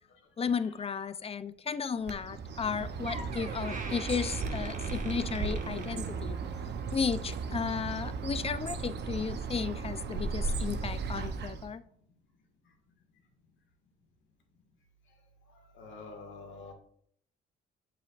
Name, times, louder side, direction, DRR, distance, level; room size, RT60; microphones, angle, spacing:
voice 1, 0.4-6.4 6.9-11.8, left 6 dB, 30° left, 12 dB, 0.5 m, -34 dB
Bird, 2.0-11.8, right 4 dB, 60° right, 0.7 m, -36 dB
Door, 2.6-2.7 3.0-6.5 6.9-7.2 7.9-8.0, right 3 dB, 40° right, 1.3 m, -44 dB
voice 2, 15.7-16.7, left 3 dB, 70° left, 2 dB, 1.9 m, -46 dB
7.6 x 7.3 x 2.4 m, 0.64 s
cardioid pair, 90°, 20 cm